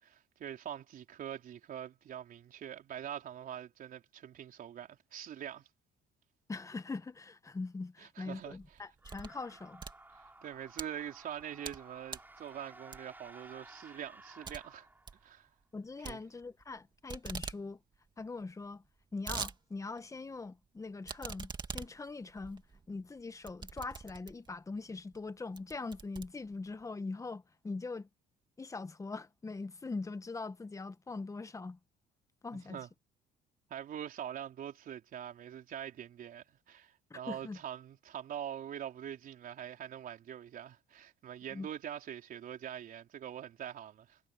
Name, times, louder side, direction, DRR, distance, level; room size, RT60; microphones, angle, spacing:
voice 1, 0.0-5.7 8.0-8.6 10.1-14.9 15.2-15.5 16.0-16.2 32.5-32.9 33.7-44.2, right 10 dB, 55° right, 4.1 m, -44 dB
voice 2, 6.5-9.8 15.7-17.8 18.2-18.8 19.1-22.6 22.9-28.1 28.6-31.8 32.4-32.8 37.1-37.6 41.5-41.7, left 3 dB, 20° left, 1.3 m, -42 dB
sound 1, 8.4-9.4 9.7-10.9 11.4-11.8 12.1-12.4 12.9-13.3 13.7-13.8 14.1-14.2 14.4-14.6 14.9-15.2 16.0-16.8 17.1-17.6 17.9-18.0 18.2-18.3 18.8-19.6 20.0-20.1 21.0-24.6 25.1-25.2 25.6-26.8, right 4 dB, 25° right, 2.2 m, -43 dB
sound 2, 9.0-15.4, right 2 dB, 10° right, 6.9 m, -56 dB
cardioid pair, 110°, 17 cm